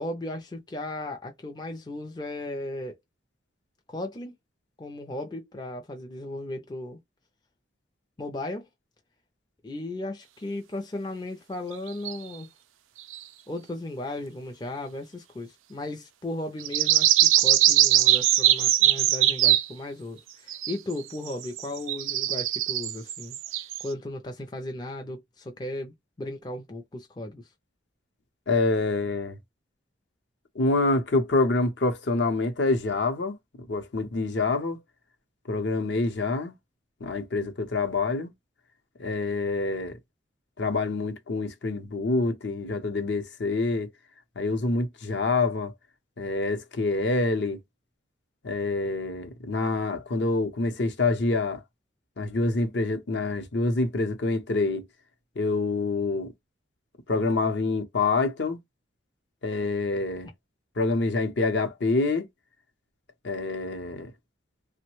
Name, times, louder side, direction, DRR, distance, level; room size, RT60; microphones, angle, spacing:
voice 1, 0.0-3.0 3.9-4.3 4.8-7.0 8.2-8.7 9.6-12.5 13.5-23.4 23.8-27.5, left 1 dB, 20° left, 0.4 m, -36 dB
sound 1, 11.9-12.2 13.1-13.2 16.6-19.7 20.5-20.9 21.3-23.9, right 13 dB, 90° right, 0.4 m, -21 dB
voice 2, 28.5-29.4 30.6-33.4 33.7-34.8 35.5-36.5 37.0-38.3 39.0-40.0 40.6-43.9 44.4-45.7 46.2-47.6 48.4-51.6 52.2-54.9 55.4-56.3 57.1-58.6 59.4-60.3 60.8-62.2 63.2-64.1, left 3 dB, 60° left, 0.7 m, -26 dB
3.0 x 2.1 x 3.0 m
head